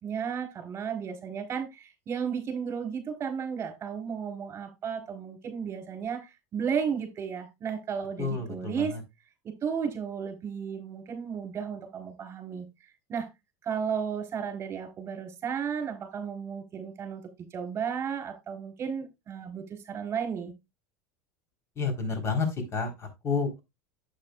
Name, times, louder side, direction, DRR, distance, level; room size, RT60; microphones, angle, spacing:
voice 1, 0.0-9.0 9.6-12.7 13.1-13.3 13.6-17.2 17.5-20.5, right 7 dB, 30° right, 3.7 m, -33 dB
voice 2, 8.2-9.0 21.8-23.6, left 4 dB, 35° left, 3.9 m, -30 dB
10.5 x 8.1 x 2.4 m
supercardioid pair, 110°, 8 cm